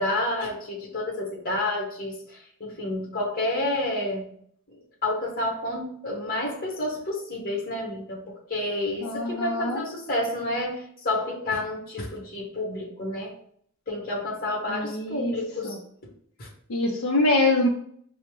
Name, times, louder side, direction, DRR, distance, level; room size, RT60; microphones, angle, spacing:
voice 1, 0.0-4.3 5.0-8.2 8.5-13.3 13.9-15.8 16.4-16.5, left 1 dB, 40° left, -2 dB, 1.0 m, -29 dB
voice 2, 9.0-9.9 14.7-15.4 15.6-15.8 16.7-17.7, left 2 dB, 65° left, 0 dB, 0.5 m, -24 dB
5.2 x 2.0 x 3.0 m, 0.65 s
head